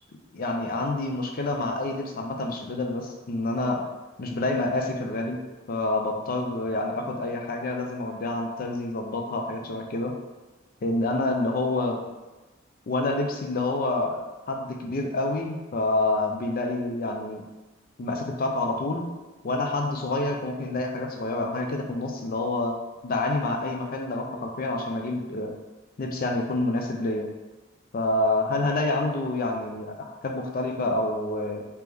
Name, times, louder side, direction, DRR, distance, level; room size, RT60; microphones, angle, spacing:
voice 1, 0.3-3.9 4.2-5.4 5.7-10.1 10.8-12.0 12.9-14.2 14.5-17.5 18.0-19.0 19.4-22.8 23.0-25.5 26.0-27.3 27.9-31.6, left 2 dB, 45° left, 2 dB, 0.5 m, -28 dB
3.4 x 2.9 x 3.4 m, 1.1 s
head